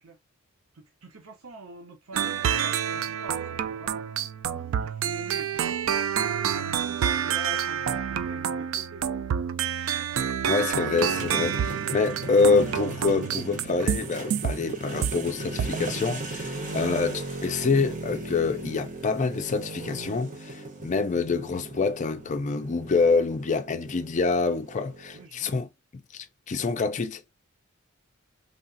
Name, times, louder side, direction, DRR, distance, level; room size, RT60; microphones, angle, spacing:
voice 1, 0.7-4.1 4.5-6.0 6.3-9.2 16.5-16.8 23.4-23.6 25.1-25.5, right 3 dB, 85° right, 0.8 m, -46 dB
sound 1, 2.1-15.2 15.6-15.9, right 8 dB, 65° right, 0.3 m, -28 dB
voice 2, 10.5-27.2, left 4 dB, 35° left, 0.4 m, -26 dB
sound 2, 10.9-25.2, right 2 dB, 40° right, 0.8 m, -37 dB
3.3 x 2.4 x 2.5 m
head